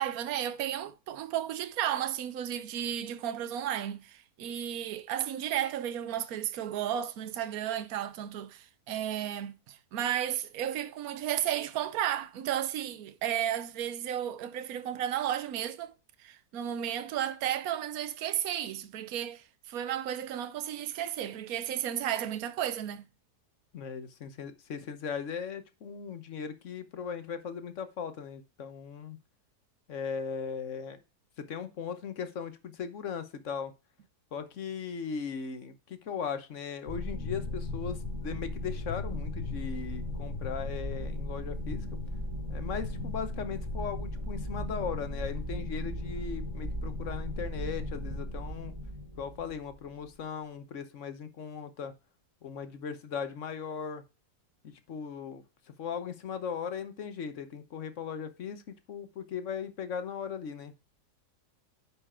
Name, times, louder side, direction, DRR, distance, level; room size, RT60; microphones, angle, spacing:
voice 1, 0.0-15.9 16.2-23.1, right 10 dB, 70° right, 1.2 m, -33 dB
voice 2, 23.7-29.2 29.9-31.0 31.4-33.7 34.3-42.0 42.5-48.7 49.2-51.9 52.4-54.0 54.6-55.4 55.8-60.7, left 6 dB, 55° left, 1.2 m, -38 dB
sound 1, 36.9-50.2, left 1 dB, 15° right, 2.6 m, -36 dB
9.6 x 5.0 x 4.3 m
omnidirectional pair, 1.7 m